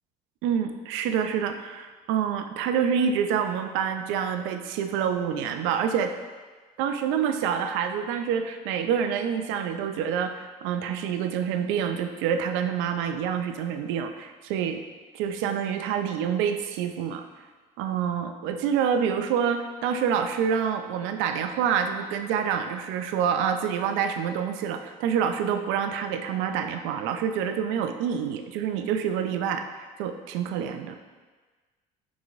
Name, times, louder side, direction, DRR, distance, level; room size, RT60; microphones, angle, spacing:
voice 1, 0.4-6.1 6.8-14.8 15.1-17.3 17.8-29.7 30.0-31.0, right 7 dB, 70° right, 7 dB, 0.4 m, -27 dB
6.0 x 3.0 x 2.5 m, 1.3 s
hypercardioid pair, 70°, 20 cm